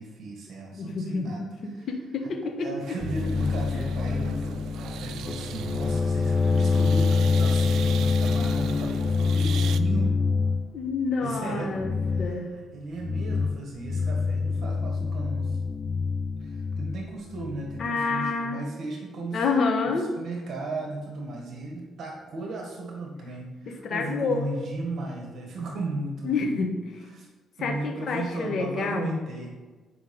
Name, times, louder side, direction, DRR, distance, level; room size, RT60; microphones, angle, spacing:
voice 1, 0.0-1.9 2.2-10.2 11.2-15.6 16.4-19.4 19.8-26.6 27.0-27.3 27.6-29.5, right 2 dB, 65° right, 0 dB, 1.7 m, -36 dB
voice 2, 0.7-1.5 1.9-2.7 10.7-11.9 12.2-12.5 17.8-18.6 19.3-20.1 23.8-24.5 26.2-26.8 27.6-29.2, left 4 dB, 60° left, 3 dB, 1.4 m, -28 dB
sound 1, 2.8-9.8, right 9 dB, 80° right, 0.4 m, -40 dB
sound 2, 3.0-10.7 11.8-12.4 13.0-13.6 13.8-17.9, left 4 dB, 30° left, 0.6 m, -26 dB
9.8 x 5.3 x 5.4 m, 1.3 s
cardioid pair, 90°, 0 cm